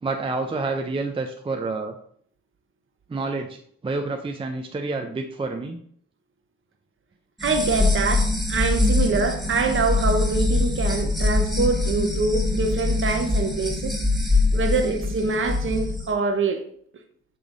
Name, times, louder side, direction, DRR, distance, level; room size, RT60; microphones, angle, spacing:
voice 1, 0.0-1.9 3.1-5.8, right 3 dB, 20° right, 4 dB, 0.5 m, -28 dB
sound 1, 7.4-16.0, left 2 dB, ahead, 1.7 m, -23 dB
voice 2, 7.4-14.0 14.5-16.6, right 4 dB, 45° right, 5 dB, 1.1 m, -24 dB
7.3 x 3.3 x 3.9 m, 0.62 s
cardioid pair, 90°, 30 cm